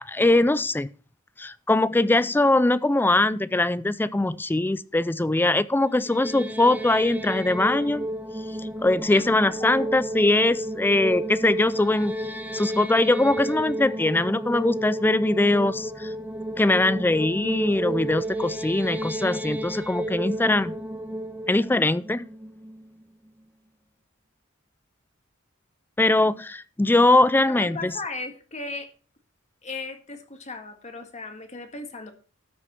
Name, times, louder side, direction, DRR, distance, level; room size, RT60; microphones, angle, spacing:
voice 1, 0.1-0.9 1.4-8.1 8.6-12.1 12.5-16.1 16.6-20.8 21.5-22.2 26.0-27.9, left 2 dB, 10° left, 0.4 m, -22 dB
sound 1, 5.9-23.0, right 1 dB, 10° right, 0.8 m, -32 dB
voice 2, 9.1-9.9 27.5-28.9 29.6-32.1, left 3 dB, 35° left, 1.8 m, -37 dB
13.0 x 6.5 x 4.3 m
head